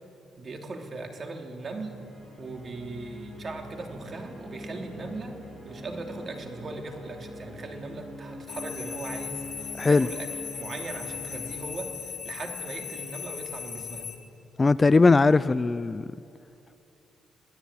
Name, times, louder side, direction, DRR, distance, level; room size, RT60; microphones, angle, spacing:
voice 1, 0.4-2.0 2.4-5.4 5.6-14.1, right 3 dB, 40° right, 3 dB, 2.8 m, -39 dB
sound 1, 1.7-13.2, equal, 25° right, 5.6 m, -43 dB
sound 2, 8.5-14.2, left 8 dB, 60° left, 3.1 m, -38 dB
voice 2, 14.6-16.1, left 3 dB, 25° left, 17 dB, 0.4 m, -19 dB
22.0 x 16.0 x 8.5 m, 2.8 s
cardioid pair, 90°, 0 cm